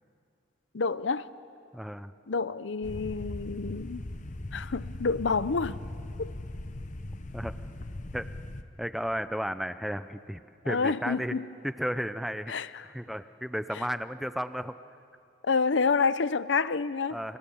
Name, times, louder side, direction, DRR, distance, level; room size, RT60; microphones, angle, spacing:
voice 1, 0.7-1.3 2.3-4.1 4.5-5.8 6.2-6.3 10.6-11.5 12.5-12.9 15.4-17.2, left 4 dB, 75° left, 0.7 m, -28 dB
voice 2, 1.7-2.1 7.3-7.5 8.1-8.3 8.8-11.3 11.6-12.5 12.8-14.8 17.1-17.4, equal, ahead, 0.6 m, -33 dB
sound 1, 2.8-8.6, left 1 dB, 40° left, 1.0 m, -39 dB
29.0 x 25.0 x 7.2 m
head